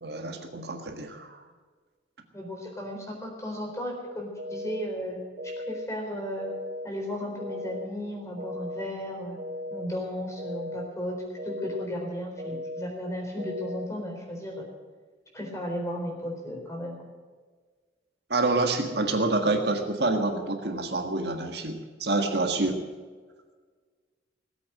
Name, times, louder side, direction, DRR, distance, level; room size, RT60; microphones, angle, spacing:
voice 1, 0.0-1.4 18.3-22.8, right 2 dB, 60° right, 4 dB, 1.6 m, -27 dB
voice 2, 2.3-5.2 5.4-6.5 6.8-9.4 9.7-11.2 11.4-14.6 15.3-16.9, equal, 15° left, 0 dB, 4.1 m, -35 dB
sound 1, 4.4-4.9 5.4-5.9 6.4-6.9 7.4-7.9 8.4-8.9 9.4-9.9 10.4-10.9 11.4-11.9 12.4-12.9 13.4-13.9, left 1 dB, 40° right, 1.0 m, -36 dB
18.5 x 8.4 x 9.2 m, 1.5 s
head